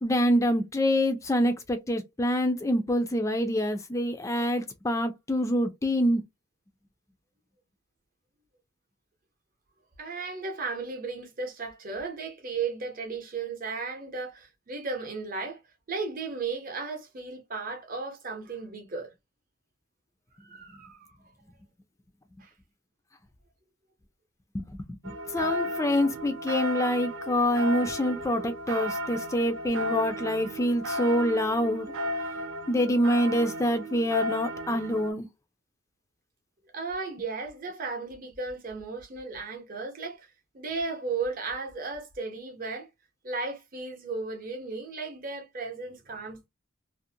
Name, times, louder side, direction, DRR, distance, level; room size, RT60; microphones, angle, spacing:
voice 1, 0.0-6.2 24.5-31.9 32.7-35.3, equal, 15° left, 0.3 m, -26 dB
voice 2, 10.0-15.6 15.9-19.1 20.4-21.1 22.4-22.5 36.7-40.3 40.5-42.9 43.2-46.5, right 4 dB, 40° right, 0.7 m, -35 dB
sound 1, 25.0-35.1, equal, 70° right, 0.4 m, -34 dB
2.5 x 2.1 x 2.6 m
head